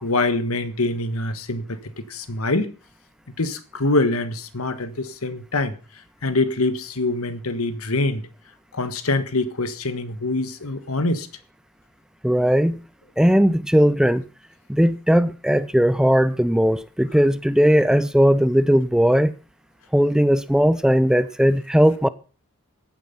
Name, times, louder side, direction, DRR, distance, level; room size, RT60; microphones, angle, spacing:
voice 1, 0.0-2.7 3.4-5.7 6.2-8.2 8.7-11.3, left 2 dB, 85° left, 1.6 m, -24 dB
voice 2, 12.2-12.8 13.2-14.2 14.7-19.3 19.9-22.1, equal, 5° right, 0.5 m, -18 dB
15.0 x 9.3 x 5.9 m
head